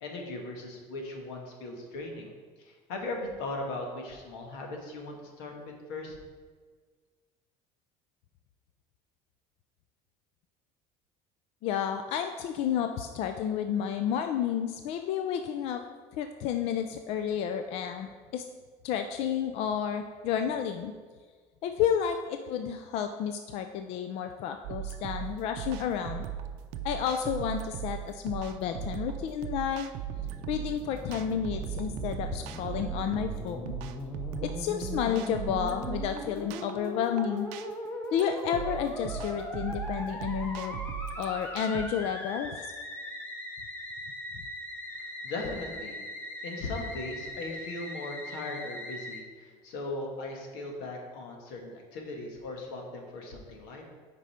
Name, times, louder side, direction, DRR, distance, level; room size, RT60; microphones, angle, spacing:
voice 1, 0.0-2.3 2.6-6.2 45.2-46.0 46.4-53.8, left 2 dB, 90° left, 1 dB, 1.6 m, -38 dB
voice 2, 11.6-15.8 16.2-18.5 18.8-20.9 21.6-26.3 26.8-29.9 30.5-33.7 34.4-37.5 38.1-40.8 41.2-42.7, left 8 dB, 55° left, 7 dB, 0.4 m, -31 dB
sound 1, 24.6-41.9, right 10 dB, 75° right, 0.5 m, -38 dB
Musical instrument, 30.1-49.2, left 1 dB, 15° left, 0.8 m, -40 dB
8.2 x 5.3 x 4.3 m, 1.5 s
cardioid pair, 160°, 13 cm